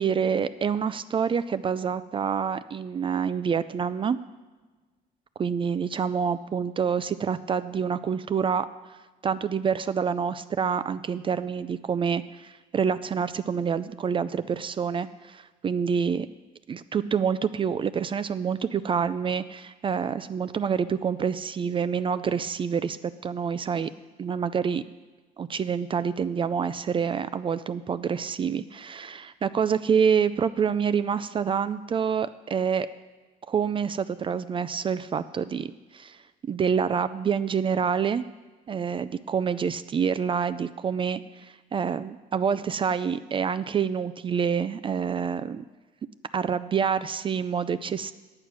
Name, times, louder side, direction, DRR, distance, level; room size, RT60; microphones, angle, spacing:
voice 1, 0.0-4.2 5.4-8.7 9.2-16.3 16.7-23.0 23.2-23.9 24.2-24.8 25.4-32.9 33.5-36.2 36.5-38.2 38.7-45.7 46.3-48.1, right 7 dB, 30° right, 13 dB, 0.4 m, -27 dB
9.2 x 8.8 x 6.1 m, 1.3 s
cardioid pair, 110°, 17 cm